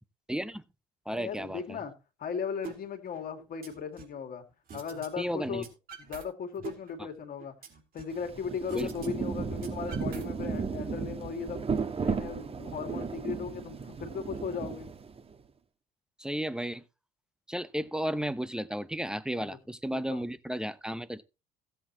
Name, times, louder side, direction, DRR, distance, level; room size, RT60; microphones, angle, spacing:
voice 1, 0.3-0.6 1.1-1.8 5.2-5.6 8.7-8.9 16.2-16.8 17.5-21.2, equal, 5° right, 0.8 m, -33 dB
voice 2, 1.1-1.9 2.2-4.4 4.7-5.7 6.0-7.6 7.9-11.6 12.0-14.9 19.4-19.6 19.9-20.3, left 6 dB, 50° left, 2.3 m, -37 dB
sound 1, 2.6-2.8 3.1-4.2 4.7-5.1 5.3-6.2 6.5-8.2 8.7-9.1 9.3-10.6, right 5 dB, 50° right, 3.6 m, -45 dB
Rain, 8.1-15.3, right 5 dB, 30° right, 1.3 m, -35 dB
16.0 x 8.0 x 3.0 m
hypercardioid pair, 60°, 19 cm